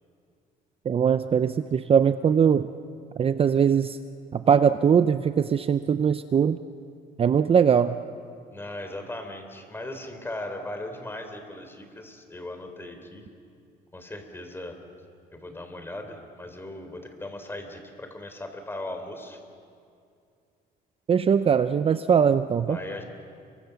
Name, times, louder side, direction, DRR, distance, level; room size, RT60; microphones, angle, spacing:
voice 1, 0.9-2.7 3.2-4.0 4.3-6.6 7.2-8.0 21.1-22.8, right 7 dB, 35° right, 11 dB, 0.6 m, -21 dB
voice 2, 8.5-13.3 13.9-14.8 15.3-19.4 22.7-23.0, left 1 dB, 15° left, 6 dB, 3.9 m, -38 dB
30.0 x 24.0 x 7.1 m, 2.4 s
cardioid pair, 110°, 17 cm